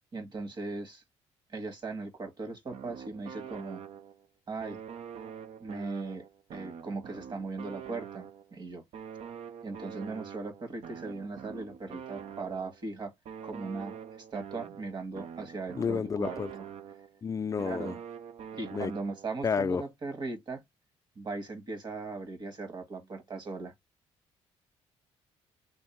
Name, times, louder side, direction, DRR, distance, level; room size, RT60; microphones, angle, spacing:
voice 1, 0.1-1.0 1.5-3.8 4.5-4.8 5.6-6.2 6.5-8.8 9.6-13.1 13.4-13.9 14.3-16.6 17.6-18.0 18.5-20.6 21.2-23.7, right 3 dB, 40° right, 1.4 m, -38 dB
sound 1, 2.7-4.3 4.6-8.6 8.9-12.8 13.2-17.2 17.6-19.4, right 8 dB, 60° right, 0.5 m, -45 dB
voice 2, 15.8-16.5 17.2-17.9 18.7-18.9 19.4-19.8, left 6 dB, 30° left, 0.4 m, -30 dB
3.3 x 2.6 x 4.4 m
cardioid pair, 85°, 12 cm